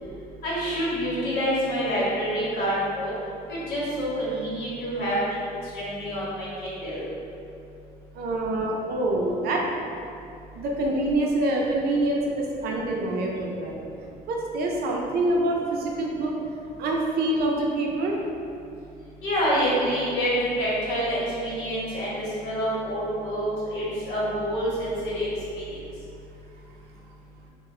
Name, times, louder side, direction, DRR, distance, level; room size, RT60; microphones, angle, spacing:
voice 1, 0.4-3.1 3.5-5.2 5.7-7.0 19.2-25.3 25.5-25.6, equal, 90° left, -8 dB, 1.0 m, -27 dB
voice 2, 8.1-9.6 10.6-13.8 14.3-16.3 16.8-18.2, right 1 dB, 70° right, -1 dB, 0.5 m, -26 dB
2.1 x 2.0 x 3.6 m, 2.6 s
cardioid pair, 110°, 17 cm